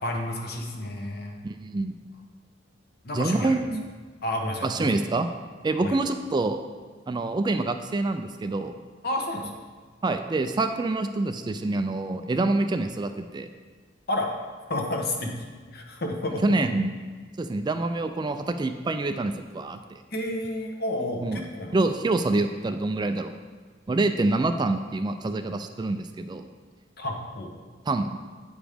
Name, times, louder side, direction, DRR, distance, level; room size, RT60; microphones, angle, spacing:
voice 1, 0.0-1.3 3.0-3.6 4.2-4.9 5.8-5.9 9.0-9.5 14.1-14.3 14.7-16.7 20.1-21.8 27.0-27.5, left 1 dB, 55° left, 1 dB, 1.2 m, -30 dB
voice 2, 1.4-1.9 3.1-3.8 4.6-5.3 5.6-6.6 7.1-8.7 10.0-13.5 16.4-16.9 17.4-20.0 21.2-21.4 21.7-23.3 23.9-26.4 27.9-28.1, right 2 dB, 25° right, 8 dB, 0.3 m, -26 dB
8.7 x 5.0 x 5.1 m, 1.5 s
head